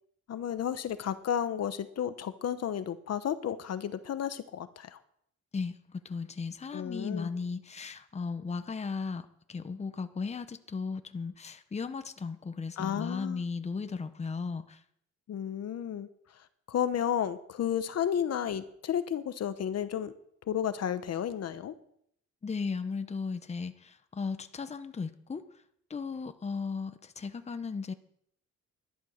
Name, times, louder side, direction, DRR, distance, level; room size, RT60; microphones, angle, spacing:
voice 1, 0.3-5.0 6.7-7.3 12.8-13.4 15.3-16.1 16.7-20.1 20.5-21.7, left 9 dB, 55° left, 12 dB, 0.9 m, -32 dB
voice 2, 5.5-14.8 22.4-25.4 25.9-27.9, left 4 dB, 20° left, 10 dB, 0.9 m, -36 dB
11.5 x 11.5 x 6.4 m, 0.69 s
cardioid pair, 130°, 30 cm